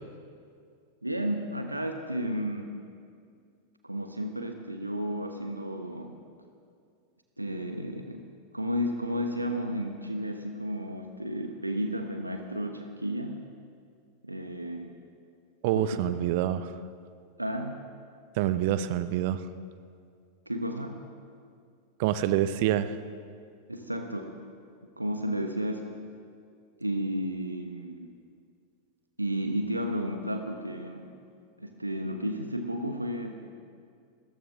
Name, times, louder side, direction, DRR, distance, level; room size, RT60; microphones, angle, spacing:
voice 1, 1.0-2.7 3.8-6.2 7.4-8.3 8.5-13.4 14.2-14.9 15.7-15.8 17.4-17.8 20.5-21.0 23.7-24.3 25.0-26.0 26.8-28.1 29.2-31.1 31.6-33.5, equal, 85° right, 5 dB, 1.0 m, -32 dB
voice 2, 15.6-16.7 18.4-19.4 22.0-22.9, right 12 dB, 50° right, 13 dB, 0.7 m, -26 dB
29.0 x 14.0 x 3.6 m, 2.2 s
figure-of-eight pair, 90°, 0 cm